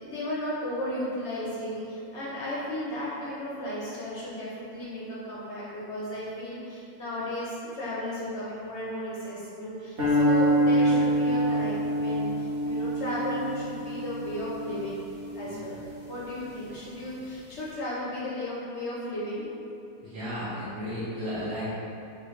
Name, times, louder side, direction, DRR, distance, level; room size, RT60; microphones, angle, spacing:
voice 1, 0.0-15.0 15.3-19.4, left 1 dB, 65° left, -7 dB, 0.7 m, -34 dB
sound 1, 10.0-16.3, right 1 dB, 45° right, 1.1 m, -26 dB
voice 2, 20.0-21.7, equal, 80° right, -13 dB, 1.8 m, -34 dB
5.3 x 2.6 x 3.1 m, 2.8 s
omnidirectional pair, 2.0 m